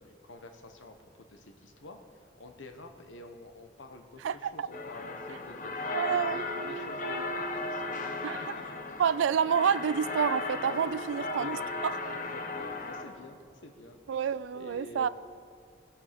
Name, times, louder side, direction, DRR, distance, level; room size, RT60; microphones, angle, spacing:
voice 1, 0.0-8.8 10.9-11.7 12.1-14.3 14.5-15.1, left 2 dB, 80° left, 6 dB, 1.1 m, -49 dB
voice 2, 4.2-4.7 5.9-6.4 8.2-8.5 9.0-11.6 11.8-11.9 14.1-15.1, right 7 dB, 80° right, 16 dB, 0.3 m, -28 dB
sound 1, 4.7-13.0, left 2 dB, 45° left, 0.8 m, -36 dB
18.5 x 7.0 x 5.1 m, 2.4 s
head